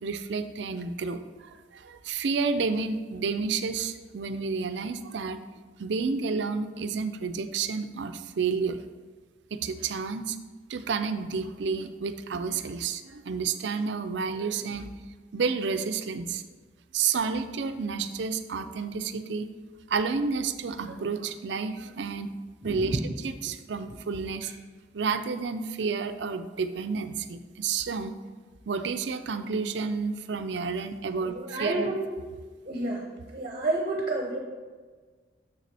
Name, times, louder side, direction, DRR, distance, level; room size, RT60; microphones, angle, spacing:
voice 1, 0.0-5.4 5.8-8.8 9.5-10.4 10.7-14.9 15.3-16.4 16.9-19.5 19.9-22.3 22.6-24.5 24.9-28.2 28.7-31.9, right 5 dB, 70° right, 9 dB, 0.5 m, -30 dB
voice 2, 22.6-23.3 23.9-24.5 31.2-32.0 32.6-33.1 33.3-34.4, right 2 dB, 40° right, 1 dB, 0.8 m, -31 dB
7.0 x 6.5 x 3.4 m, 1.4 s
head